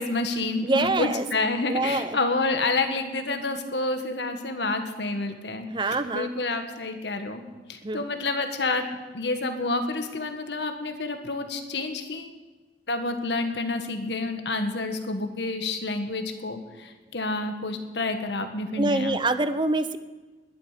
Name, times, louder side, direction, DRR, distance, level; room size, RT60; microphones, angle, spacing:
voice 1, 0.0-7.4 7.7-12.3 12.9-19.2, left 3 dB, 80° left, 6 dB, 1.7 m, -29 dB
voice 2, 0.6-1.2 1.7-2.2 5.7-6.3 7.8-8.0 18.8-20.0, right 2 dB, 25° right, 12 dB, 0.7 m, -25 dB
20.0 x 11.5 x 5.1 m, 1.2 s
head